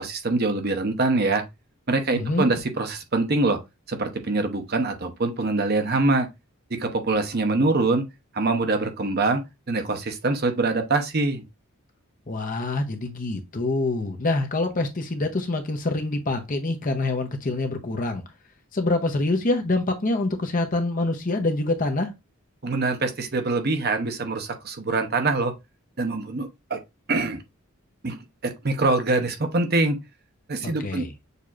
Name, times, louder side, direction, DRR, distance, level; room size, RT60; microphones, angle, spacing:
voice 1, 0.0-1.4 1.9-3.6 3.9-6.3 6.7-8.0 8.3-11.4 22.6-25.5 26.0-26.8 27.1-27.4 28.0-28.2 28.4-30.0 30.5-31.0, right 3 dB, 45° right, 0.8 m, -24 dB
voice 2, 2.1-2.5 12.3-18.2 18.7-22.1 30.6-31.1, left 2 dB, 40° left, 0.8 m, -26 dB
6.6 x 2.9 x 2.5 m
head